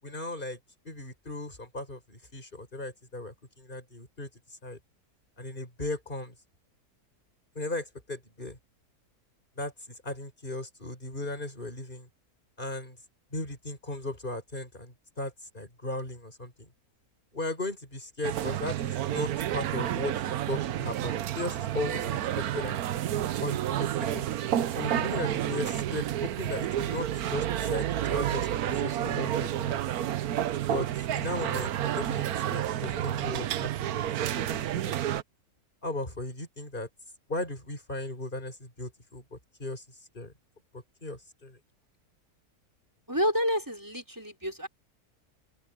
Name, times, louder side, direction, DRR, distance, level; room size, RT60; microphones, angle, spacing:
voice 1, 0.0-0.6 0.8-4.3 4.6-4.8 5.4-6.3 7.5-8.6 9.6-12.1 12.6-13.0 13.3-16.7 17.3-22.2 22.5-22.9 23.4-24.3 24.7-29.8 30.6-30.9 31.1-34.0 34.4-35.0 35.8-36.9 37.3-39.8 40.1-40.3 40.7-41.6, left 2 dB, 30° left, 6.0 m, -37 dB
sound 1, 18.2-35.2, right 11 dB, 75° right, 1.2 m, -30 dB
voice 2, 43.1-44.7, equal, 10° right, 5.4 m, -29 dB
open air
omnidirectional pair, 1.6 m